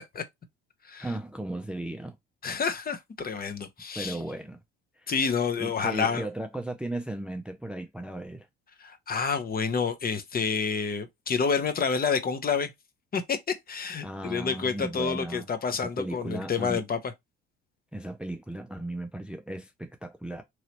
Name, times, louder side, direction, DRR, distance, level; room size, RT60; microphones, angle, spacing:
voice 1, 1.0-2.2 4.0-4.6 4.9-8.5 14.0-15.5 15.8-16.8 17.9-20.4, right 1 dB, 5° right, 0.4 m, -36 dB
voice 2, 2.4-4.2 5.1-6.3 8.8-12.7 13.1-17.0, left 5 dB, 30° left, 0.7 m, -29 dB
3.1 x 2.8 x 2.9 m
hypercardioid pair, 65°, 31 cm